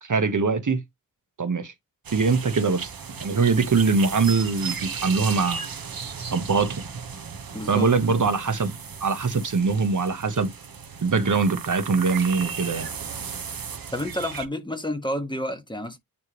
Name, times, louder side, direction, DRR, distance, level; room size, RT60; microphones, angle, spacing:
voice 1, 0.0-0.8 1.4-1.7 2.1-2.9 3.2-5.7 6.3-6.8 7.7-8.7 9.0-10.5 11.0-12.9, right 4 dB, 55° right, 1.2 m, -22 dB
sound 1, 2.0-14.5, right 6 dB, 75° right, 1.3 m, -35 dB
voice 2, 7.5-7.9 13.9-16.0, left 1 dB, 15° left, 1.6 m, -30 dB
9.6 x 3.5 x 3.1 m
wide cardioid pair, 115°, 35 cm